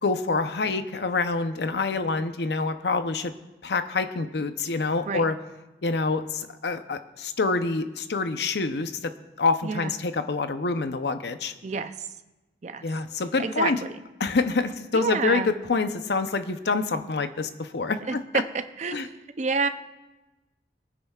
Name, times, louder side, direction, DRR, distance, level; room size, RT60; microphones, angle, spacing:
voice 1, 0.0-3.3 3.6-5.4 5.8-9.1 9.4-11.5 12.8-13.8 14.2-18.4 18.9-19.1, left 3 dB, 65° left, 10 dB, 0.7 m, -26 dB
voice 2, 9.6-9.9 11.6-12.1 12.6-12.8 13.4-13.9 14.9-15.5 18.1-19.7, right 4 dB, 40° right, 10 dB, 0.5 m, -29 dB
22.0 x 9.8 x 2.4 m, 1.1 s
head